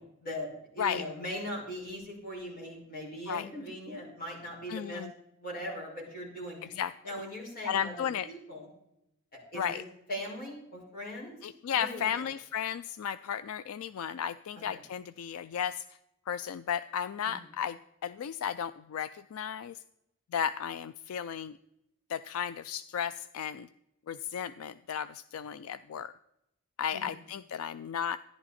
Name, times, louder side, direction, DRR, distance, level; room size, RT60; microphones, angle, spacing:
voice 1, 0.7-5.0 5.4-6.7 7.0-7.9 8.3-8.7 9.5-9.8 10.1-11.4 11.6-12.2 17.2-17.4 26.9-27.2, equal, 45° left, -2 dB, 5.3 m, -40 dB
voice 2, 4.7-5.1 6.6-6.9 7.6-8.3 9.5-9.8 11.4-16.0 16.3-19.8 20.3-21.6 22.1-23.7 24.1-26.1 26.8-28.2, left 8 dB, 80° left, 15 dB, 0.4 m, -34 dB
14.0 x 11.0 x 4.2 m, 0.84 s
head